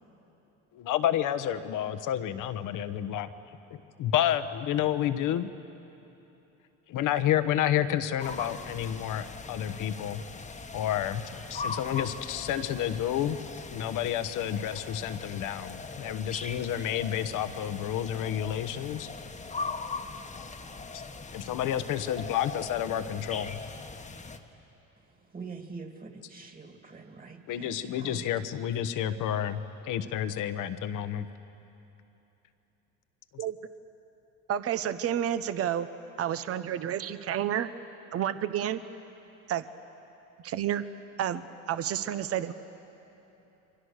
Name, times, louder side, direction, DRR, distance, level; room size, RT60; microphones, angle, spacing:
voice 1, 0.7-3.3 3.7-5.5 6.9-10.2 10.7-11.2 11.5-13.4 13.7-19.1 20.9-21.0 21.3-23.6 27.5-31.3, left 10 dB, 65° left, 11 dB, 1.2 m, -30 dB
sound 1, 8.2-24.4, left 4 dB, 20° left, 1.3 m, -40 dB
voice 2, 25.3-28.2, right 4 dB, 25° right, 4 dB, 2.5 m, -44 dB
voice 3, 34.5-35.9 36.2-37.7 38.1-38.8 39.5-39.7 40.4-40.8 41.2-42.5, right 10 dB, 45° right, 12 dB, 0.9 m, -30 dB
29.0 x 24.0 x 6.6 m, 3.0 s
cardioid pair, 110°, 34 cm